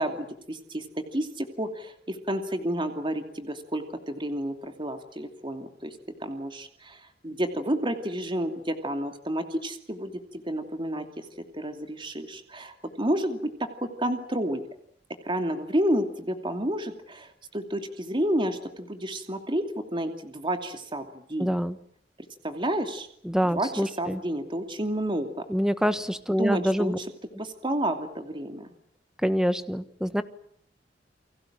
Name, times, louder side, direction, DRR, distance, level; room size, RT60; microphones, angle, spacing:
voice 1, 0.0-6.0 6.2-11.2 11.5-13.4 13.8-14.6 15.2-19.7 19.9-21.5 22.4-23.1 23.5-23.7 24.0-25.4 26.4-26.9 27.4-28.7, right 1 dB, 30° right, 6 dB, 2.7 m, -30 dB
voice 2, 21.4-21.8 23.2-24.2 25.5-27.0 29.2-30.2, equal, 5° right, 11 dB, 1.4 m, -26 dB
29.5 x 23.0 x 7.5 m, 0.64 s
head